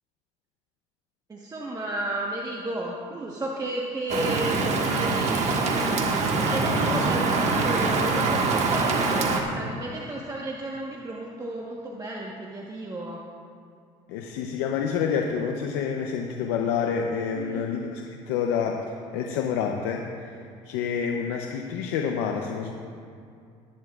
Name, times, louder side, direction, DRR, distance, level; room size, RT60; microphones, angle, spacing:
voice 1, 1.3-5.8 6.4-13.2 17.4-17.6, right 1 dB, 25° right, -2 dB, 1.2 m, -33 dB
Rain, 4.1-9.4, right 3 dB, 50° right, 1.6 m, -24 dB
voice 2, 14.1-22.7, left 6 dB, 85° left, 3 dB, 0.7 m, -28 dB
19.5 x 9.4 x 2.4 m, 2.4 s
supercardioid pair, 80°, 15 cm